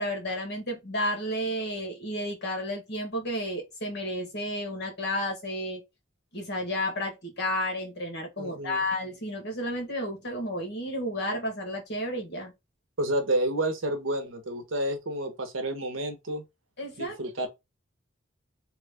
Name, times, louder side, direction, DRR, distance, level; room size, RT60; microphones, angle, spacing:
voice 1, 0.0-5.8 6.3-12.5 16.8-17.2, equal, 55° left, 1.3 m, -32 dB
voice 2, 8.4-8.9 13.0-16.4 17.0-17.5, right 1 dB, 75° right, 0.9 m, -30 dB
3.0 x 2.4 x 3.3 m
head